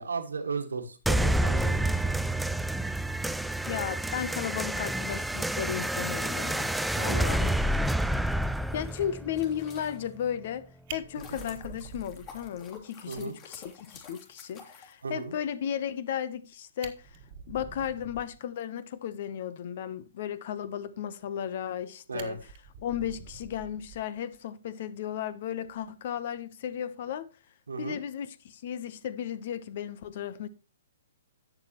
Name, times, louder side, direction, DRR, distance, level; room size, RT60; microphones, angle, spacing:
voice 1, 0.0-2.1 7.1-7.6 13.1-13.3 15.0-15.3 22.1-22.4 27.7-28.0, right 4 dB, 75° right, 1.7 m, -36 dB
sound 1, 1.1-10.1, right 1 dB, ahead, 0.4 m, -29 dB
voice 2, 3.7-7.5 8.7-10.6 10.9-17.2 17.5-22.4 22.8-27.3 27.8-30.5, left 9 dB, 50° left, 0.9 m, -35 dB
sound 2, 6.3-10.4 10.8-15.5, left 5 dB, 30° left, 2.9 m, -51 dB
Fire, 10.9-12.8 13.2-13.3 13.6-13.7 14.1-14.2 16.3-16.4 16.7-18.4 21.3-21.8 22.2-24.4 25.7-25.9, right 7 dB, 40° right, 1.5 m, -46 dB
12.0 x 7.8 x 3.0 m
figure-of-eight pair, 125°, 0 cm